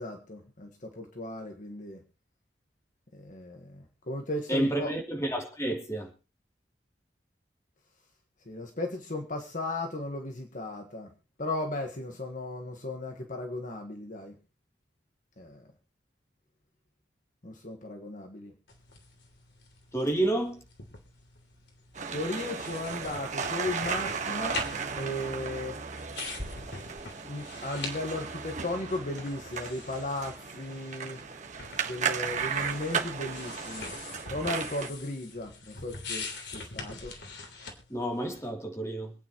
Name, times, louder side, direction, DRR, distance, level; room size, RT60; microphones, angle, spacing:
voice 1, 0.0-2.0 3.1-4.9 8.4-11.1 11.4-14.3 15.4-15.7 17.4-18.5 22.1-24.7 25.0-25.8 27.2-31.2 31.8-33.9 34.3-37.2, left 2 dB, 50° left, 1.6 m, -36 dB
voice 2, 4.5-6.1 19.9-20.6 37.9-39.1, right 1 dB, 15° left, 3.1 m, -30 dB
sound 1, 18.7-38.5, left 3 dB, 75° left, 3.2 m, -44 dB
sound 2, 21.9-34.9, right 6 dB, 45° right, 1.4 m, -35 dB
26.0 x 9.3 x 3.1 m
head